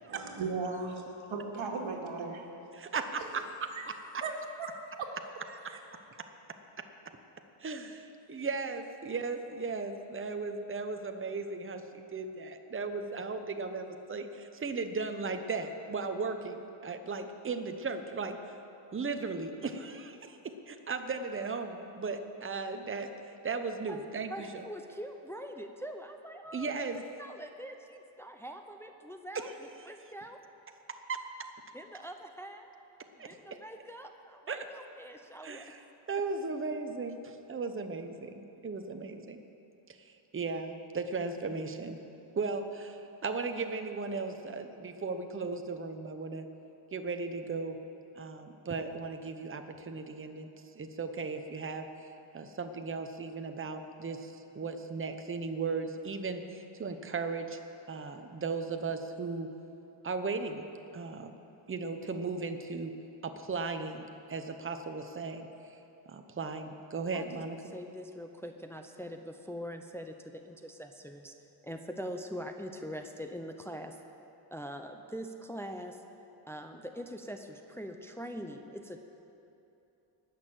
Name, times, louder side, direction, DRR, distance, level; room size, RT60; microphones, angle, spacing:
voice 1, 0.1-2.4 3.7-3.8 4.2-4.3 4.6-4.7 5.0-5.2 5.7-5.8, right 4 dB, 75° right, 0 dB, 2.3 m, -36 dB
voice 2, 2.7-3.4 5.7-5.8 7.6-18.4 18.9-20.4 20.7-23.1 23.4-24.6 26.5-27.0 29.3-29.5 31.1-31.2 33.2-33.4 34.5-34.6 35.4-35.8 36.1-39.4 40.3-42.0 42.4-46.5 46.9-47.8 48.2-50.5 50.7-52.1 52.3-57.6 57.9-59.5 60.0-60.7 60.9-61.3 61.7-62.9 63.2-65.5 66.1-67.7, right 4 dB, 25° right, 6 dB, 0.9 m, -36 dB
voice 3, 24.3-26.7 27.2-30.4 31.7-32.7 33.2-35.7 67.1-67.4 67.7-71.3 71.6-74.0 74.5-76.0 76.5-79.0, equal, 5° left, 5 dB, 0.7 m, -43 dB
19.5 x 6.6 x 7.7 m, 2.9 s
cardioid pair, 110°, 48 cm